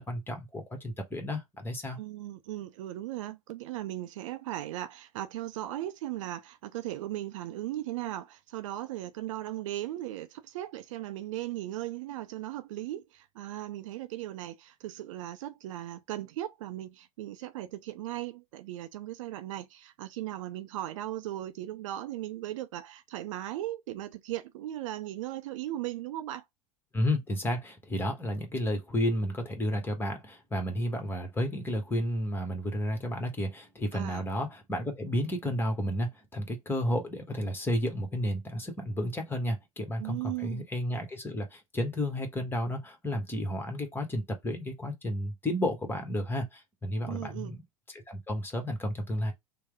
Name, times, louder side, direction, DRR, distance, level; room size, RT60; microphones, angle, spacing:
voice 1, 0.0-2.0 26.9-49.3, left 1 dB, 10° left, 1.0 m, -32 dB
voice 2, 2.0-26.4 33.9-34.3 40.0-40.7 47.1-47.5, right 14 dB, 60° right, 0.4 m, -37 dB
3.1 x 2.0 x 3.4 m
figure-of-eight pair, 85°, 19 cm